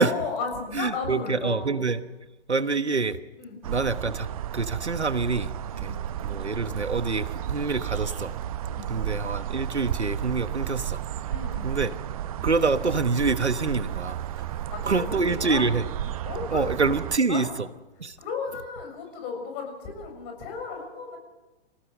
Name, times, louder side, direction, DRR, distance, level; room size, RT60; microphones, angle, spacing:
voice 1, 0.0-1.8 3.4-3.5 5.7-6.0 8.7-9.1 11.3-11.9 12.4-12.5 14.5-15.7 16.2-16.9 17.3-17.5 18.2-21.2, left 5 dB, 30° left, 3 dB, 7.1 m, -35 dB
voice 2, 0.7-2.0 2.5-3.2 3.6-4.3 4.5-5.9 6.2-8.3 8.9-11.0 11.6-11.9 12.4-14.2 14.9-15.8 16.5-17.5 18.0-18.2, right 4 dB, 80° right, 13 dB, 1.3 m, -26 dB
sound 1, 3.6-17.2, right 11 dB, 35° right, 0.9 m, -33 dB
26.0 x 18.5 x 7.7 m, 1.1 s
figure-of-eight pair, 120°, 33 cm